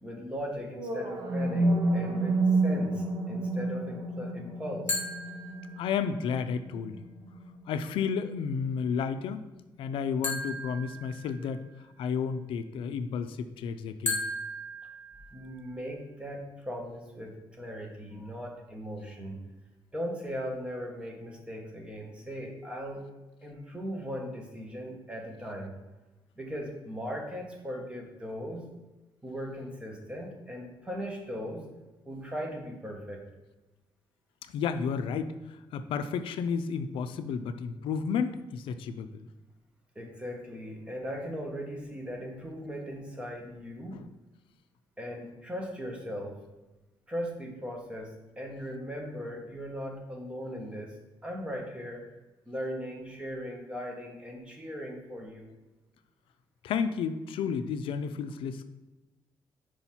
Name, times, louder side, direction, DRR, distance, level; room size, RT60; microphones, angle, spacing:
voice 1, 0.0-5.0 15.3-19.4 19.9-23.0 23.4-25.7 26.4-28.7 29.2-31.7 32.0-33.2 39.9-44.0 45.0-46.3 47.1-50.9 51.2-52.1 52.5-55.5, equal, 10° right, 0 dB, 1.2 m, -38 dB
sound 1, 0.7-8.8, right 2 dB, 50° right, 1.0 m, -30 dB
sound 2, 4.9-6.2 10.2-11.8 14.1-15.8, left 2 dB, 20° left, 1.5 m, -36 dB
voice 2, 5.8-7.0 7.7-9.4 9.8-11.6 12.0-14.2 34.5-39.3 43.9-44.0 56.6-58.7, left 6 dB, 85° left, 10 dB, 0.4 m, -32 dB
5.6 x 4.8 x 4.4 m, 1.1 s
cardioid pair, 150°, 9 cm